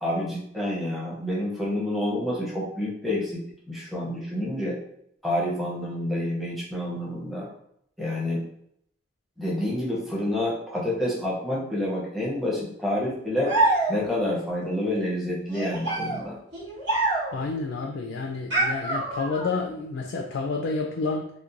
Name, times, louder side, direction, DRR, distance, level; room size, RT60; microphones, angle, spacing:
voice 1, 0.0-4.8 5.2-7.5 8.0-8.4 9.4-13.5 13.9-16.4, left 1 dB, ahead, -6 dB, 0.7 m, -28 dB
sound 1, 13.4-14.3 15.5-17.5 18.5-19.6, right 2 dB, 65° right, 1.2 m, -26 dB
voice 2, 17.3-21.3, left 4 dB, 75° left, 1 dB, 0.3 m, -29 dB
2.9 x 2.1 x 2.4 m, 0.72 s
head